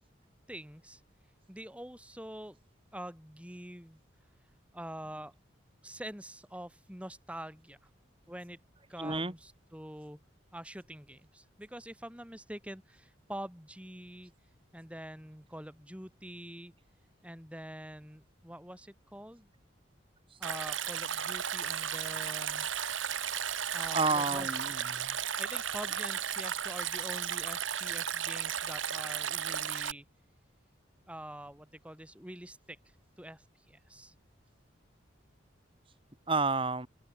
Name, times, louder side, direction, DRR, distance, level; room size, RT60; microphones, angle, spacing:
voice 1, 0.5-1.0 1.5-2.6 2.9-4.0 4.7-5.3 5.8-7.8 8.3-8.6 8.9-10.2 10.5-14.3 14.7-16.7 17.2-19.5 20.4-22.7 23.7-24.5 25.4-30.1 31.1-32.8 33.2-34.1, right 1 dB, 5° right, 7.2 m, -45 dB
voice 2, 9.0-9.3 23.8-25.2 36.3-36.9, right 3 dB, 25° right, 2.2 m, -30 dB
Stream, 20.4-29.9, right 8 dB, 80° right, 3.0 m, -34 dB
open air
head